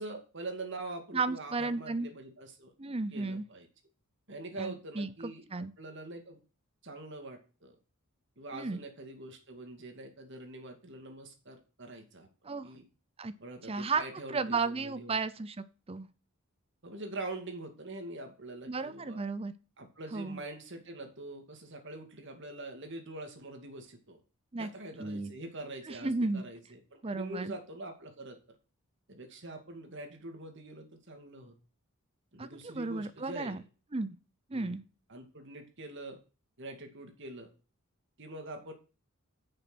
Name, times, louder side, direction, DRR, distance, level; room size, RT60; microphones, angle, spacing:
voice 1, 0.0-2.7 3.1-3.7 4.3-6.4 6.8-7.8 8.4-12.3 12.6-12.8 13.4-15.2 16.8-19.2 19.8-24.2 24.6-28.4 29.1-31.6 32.3-33.6 34.5-34.7 35.1-36.2 36.6-37.5 38.2-38.7, right 2 dB, 55° right, 5 dB, 2.4 m, -44 dB
voice 2, 1.1-2.1 2.8-3.4 4.6-5.7 8.5-8.8 12.4-12.7 13.2-13.3 13.7-14.0 14.3-16.1 18.7-19.5 20.1-20.4 24.5-24.7 25.0-25.3 25.8-26.5 27.0-27.5 32.4-33.6 33.9-34.2 34.5-34.8, right 3 dB, 25° right, 14 dB, 0.6 m, -34 dB
10.0 x 6.5 x 6.2 m, 0.35 s
head